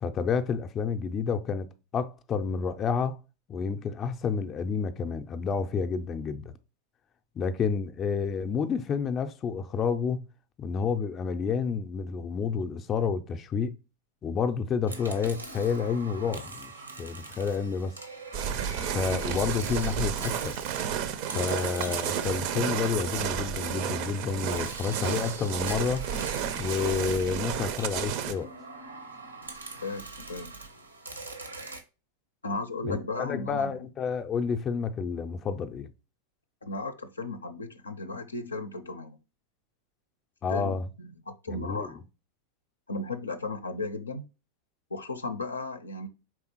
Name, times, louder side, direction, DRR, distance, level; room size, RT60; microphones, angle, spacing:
voice 1, 0.0-3.2 3.5-6.5 7.4-10.2 10.6-13.8 14.2-16.7 17.0-17.9 18.9-20.6 21.3-26.1 26.5-28.5 32.8-35.9 40.4-40.9 41.5-41.9, left 6 dB, 30° left, 0.5 m, -29 dB
sound 1, 14.9-23.7 24.5-31.8, right 3 dB, 85° right, 0.9 m, -43 dB
sound 2, 18.3-28.3, right 8 dB, 50° right, 0.5 m, -32 dB
voice 2, 29.8-30.6 32.4-33.9 36.6-39.2 40.5-42.0 42.9-44.2 44.9-46.1, left 3 dB, 80° left, 0.5 m, -35 dB
4.6 x 3.5 x 2.8 m
figure-of-eight pair, 90°, 0 cm